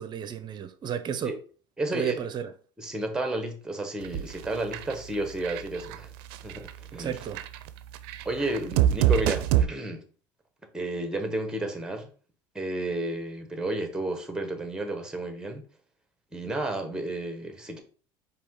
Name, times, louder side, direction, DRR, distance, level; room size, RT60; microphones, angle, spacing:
voice 1, 0.0-1.4 1.9-2.5 6.9-7.4, right 8 dB, 40° right, 0.6 m, -33 dB
voice 2, 1.8-2.2 2.8-6.1 6.4-7.2 8.2-10.0 10.7-12.1 12.5-15.6 16.3-17.8, right 2 dB, 5° right, 1.1 m, -32 dB
sound 1, 4.0-4.5 4.7-4.9 5.4-6.0 6.3-6.7 7.2-9.6, right 11 dB, 85° right, 0.4 m, -24 dB
4.8 x 2.8 x 3.7 m
supercardioid pair, 105°, 12 cm